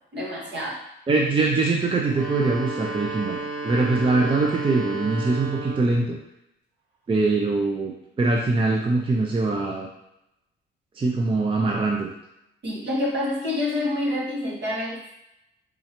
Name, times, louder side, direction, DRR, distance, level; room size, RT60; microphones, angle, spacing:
voice 1, 0.1-0.8 12.6-15.1, left 1 dB, 65° right, -4 dB, 1.4 m, -27 dB
voice 2, 1.1-3.4 3.6-6.2 7.1-9.9 11.0-12.1, right 3 dB, 25° right, -1 dB, 0.6 m, -23 dB
sound 1, 2.0-6.1, right 3 dB, 40° right, 1.3 m, -32 dB
3.7 x 3.1 x 2.9 m, 0.83 s
cardioid pair, 90°, 20 cm